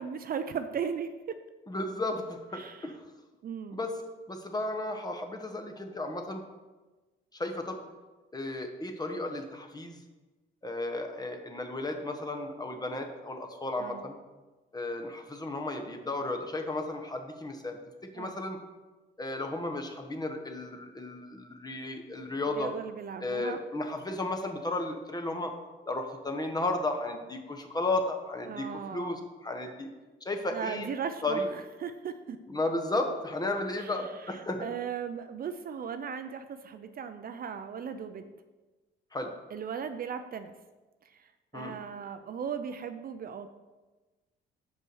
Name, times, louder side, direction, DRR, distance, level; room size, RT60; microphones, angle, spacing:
voice 1, 0.0-1.4 2.5-2.9 3.4-3.8 13.8-14.0 18.1-18.4 22.5-23.6 28.5-29.2 30.5-32.4 33.8-38.3 39.5-40.5 41.0-43.5, right 7 dB, 50° right, 9 dB, 0.5 m, -37 dB
voice 2, 1.7-2.9 3.7-3.9 4.3-6.4 7.3-7.8 8.3-10.0 10.6-14.2 14.7-17.8 18.1-18.6 19.2-22.7 23.2-25.5 25.8-29.9 30.2-30.9 31.2-31.5 32.5-34.7 39.1-39.3 41.5-41.7, left 2 dB, 20° left, 4 dB, 1.0 m, -34 dB
6.6 x 5.4 x 4.8 m, 1.2 s
cardioid pair, 90°, 20 cm